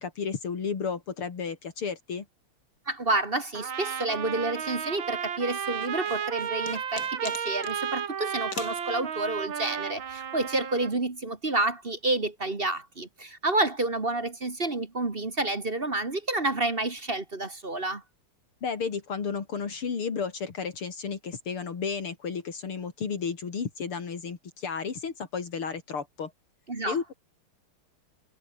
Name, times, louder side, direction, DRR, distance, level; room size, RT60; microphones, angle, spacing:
voice 1, 0.0-2.3 18.6-26.3 26.8-27.1, left 6 dB, 75° left, 3.7 m, -33 dB
voice 2, 2.9-18.0 26.7-27.1, right 2 dB, 25° right, 2.0 m, -29 dB
Trumpet, 3.5-10.9, right 8 dB, 65° right, 2.4 m, -33 dB
sound 1, 5.8-7.8 8.5-8.8, left 5 dB, 45° left, 2.5 m, -40 dB
omnidirectional pair, 2.4 m